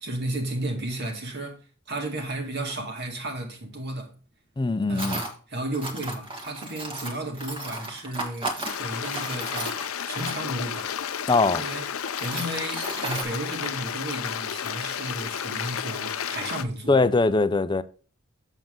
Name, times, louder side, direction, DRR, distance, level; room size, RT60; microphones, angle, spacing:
voice 1, 0.0-1.6 1.9-4.1 4.9-9.8 10.1-10.9 11.5-11.9 12.2-17.0, right 1 dB, 50° right, 2.1 m, -33 dB
Tools, 2.7-2.8 5.0-5.3 5.7-10.7 11.3-11.4 11.9-13.2, right 2 dB, 25° right, 1.5 m, -34 dB
voice 2, 4.6-5.2 11.3-11.6 16.9-17.8, left 3 dB, 20° left, 0.4 m, -21 dB
Stream, 8.7-16.6, left 8 dB, 85° left, 0.6 m, -32 dB
7.6 x 7.4 x 3.7 m
head